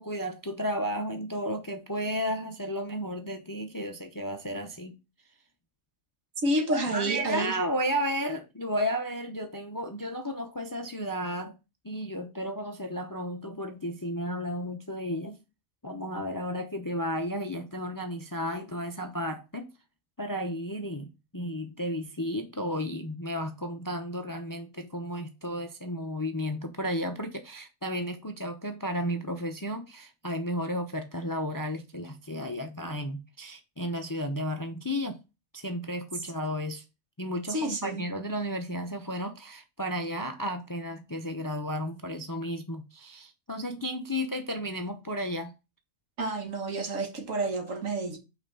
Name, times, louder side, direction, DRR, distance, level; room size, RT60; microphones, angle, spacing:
voice 1, 0.0-4.9 6.7-11.5 11.8-15.4 15.8-19.7 20.2-35.2 35.5-36.8 37.2-45.5, equal, 20° left, 0.6 m, -33 dB
voice 2, 6.4-7.6 37.5-38.0 46.2-48.2, right 2 dB, 70° right, 1.7 m, -29 dB
5.8 x 4.1 x 5.4 m
omnidirectional pair, 1.4 m